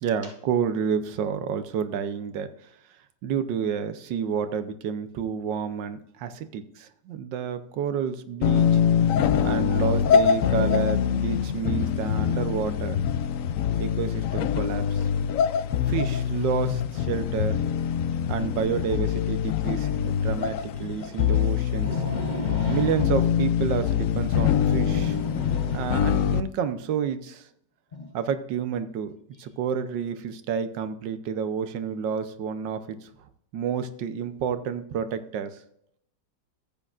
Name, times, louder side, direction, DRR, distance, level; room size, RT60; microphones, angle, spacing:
voice 1, 0.0-2.5 3.2-8.8 9.4-13.0 13.8-15.1 15.9-17.6 18.3-22.0 22.7-25.2 25.7-27.5 28.1-29.1 29.4-33.1 33.5-35.6, right 7 dB, 85° right, 1.5 m, -29 dB
sound 1, 8.4-26.4, left 8 dB, 75° left, 0.7 m, -24 dB
voice 2, 20.8-21.4 21.7-23.0 24.3-26.0 27.9-28.1, left 3 dB, 30° left, 1.0 m, -34 dB
14.0 x 8.4 x 2.5 m
omnidirectional pair, 1.9 m